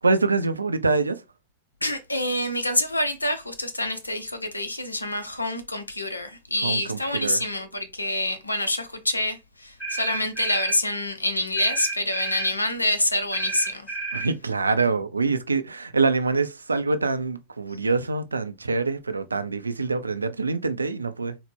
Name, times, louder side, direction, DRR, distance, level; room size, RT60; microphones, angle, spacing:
voice 1, 0.0-1.2 6.6-7.4 14.1-21.4, right 3 dB, 80° right, 0.3 m, -25 dB
voice 2, 1.8-13.8, left 1 dB, 85° left, 0.6 m, -26 dB
sound 1, 9.8-10.8 11.6-12.6 13.3-14.3, right 4 dB, 25° left, 2.2 m, -31 dB
4.1 x 2.1 x 3.3 m
figure-of-eight pair, 90°, 0 cm